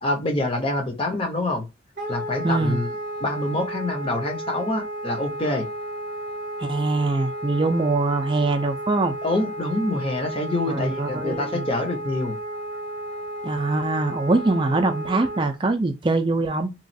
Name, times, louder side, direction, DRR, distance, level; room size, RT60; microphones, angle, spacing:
voice 1, 0.0-1.7 2.1-2.9 3.2-5.7 9.2-12.4, left 2 dB, 30° left, 0.7 m, -26 dB
Wind instrument woodwind instrument, 2.0-15.4, right 1 dB, 45° right, 0.8 m, -33 dB
voice 2, 2.4-2.8 6.6-9.1 10.7-11.7 13.4-16.7, right 2 dB, 25° right, 0.4 m, -23 dB
3.0 x 2.4 x 2.6 m
head